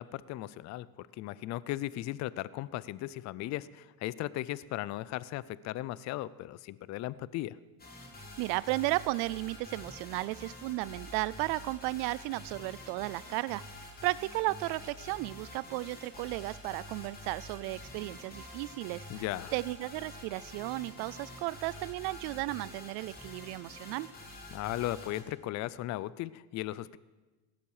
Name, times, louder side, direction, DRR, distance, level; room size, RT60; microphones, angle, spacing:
voice 1, 0.0-7.6 19.1-19.5 24.5-27.0, left 15 dB, 45° left, 19 dB, 0.4 m, -37 dB
sound 1, 7.8-25.2, left 1 dB, 20° left, 3.1 m, -47 dB
voice 2, 8.4-13.6 14.0-19.0 19.5-24.1, right 20 dB, 75° right, 20 dB, 0.5 m, -34 dB
17.0 x 13.0 x 4.8 m, 1.2 s
cardioid pair, 125°, 41 cm